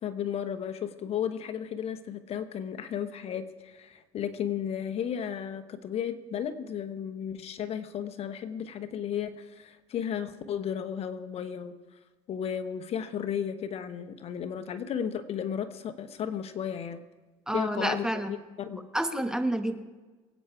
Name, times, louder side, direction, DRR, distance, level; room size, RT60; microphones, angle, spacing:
voice 1, 0.0-11.7 12.3-17.0 17.5-18.9, left 8 dB, 50° left, 10 dB, 1.0 m, -34 dB
voice 2, 17.5-18.4 18.9-19.7, right 1 dB, 5° right, 7 dB, 1.2 m, -29 dB
23.5 x 8.8 x 4.7 m, 1.3 s
supercardioid pair, 95°, 13 cm